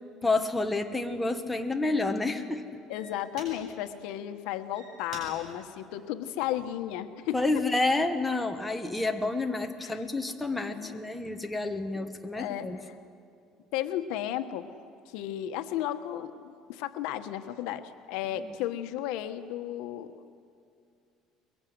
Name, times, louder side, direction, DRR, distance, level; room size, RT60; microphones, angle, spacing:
voice 1, 0.2-2.7 7.3-12.8 18.3-18.5, left 2 dB, 5° left, 4 dB, 1.3 m, -29 dB
sound 1, 1.5-1.8 2.5-2.6 2.9-3.9 4.5-6.9 7.4-7.8, right 2 dB, 45° right, 7.8 m, -48 dB
voice 2, 2.9-7.6 9.8-10.0 10.6-11.3 12.0-12.1 12.4-12.9 13.7-14.7 15.1-20.3, left 12 dB, 80° left, 9 dB, 1.2 m, -34 dB
22.5 x 22.5 x 9.5 m, 2.5 s
cardioid pair, 155°, 0 cm